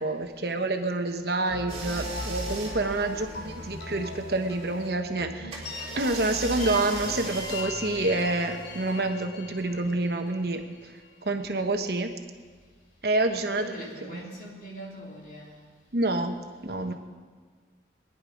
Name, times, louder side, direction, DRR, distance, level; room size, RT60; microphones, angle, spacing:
voice 1, 0.0-5.6 6.0-10.9 11.2-12.1 13.0-14.3 15.9-16.9, right 2 dB, 60° right, 6 dB, 1.1 m, -28 dB
sound 1, 1.5-11.3, left 3 dB, 70° left, 3.1 m, -40 dB
sound 2, 1.7-4.9 5.5-9.0, right 2 dB, 35° right, 2.5 m, -39 dB
voice 2, 13.4-15.6 16.9-17.0, equal, 50° left, -3 dB, 3.3 m, -42 dB
20.5 x 10.5 x 5.1 m, 1.5 s
head